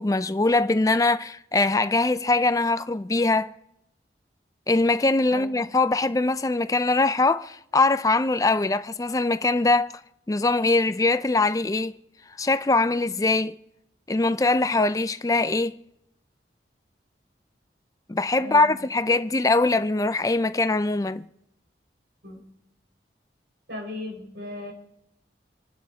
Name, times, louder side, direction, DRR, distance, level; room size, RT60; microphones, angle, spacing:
voice 1, 0.0-3.5 4.7-9.9 10.3-12.0 12.4-13.5 14.1-15.8 18.1-21.2, left 2 dB, 20° left, 0.4 m, -22 dB
voice 2, 18.4-18.7 22.2-22.4 23.7-24.7, left 2 dB, 85° right, 5.1 m, -36 dB
27.5 x 11.5 x 2.8 m
head